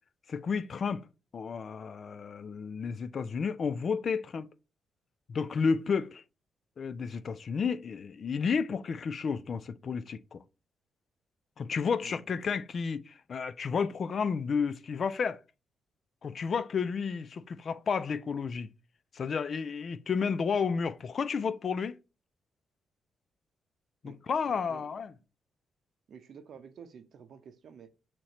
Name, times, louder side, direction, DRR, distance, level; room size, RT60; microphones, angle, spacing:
voice 1, 0.3-1.0 1.3-4.5 5.3-6.2 6.8-10.4 11.6-15.4 16.2-18.7 19.1-22.0 24.0-25.1, left 5 dB, 55° left, 0.3 m, -31 dB
voice 2, 12.0-12.5 24.0-24.9 26.1-27.9, right 7 dB, 65° right, 0.6 m, -51 dB
6.3 x 2.9 x 2.9 m
cardioid pair, 75°, 0 cm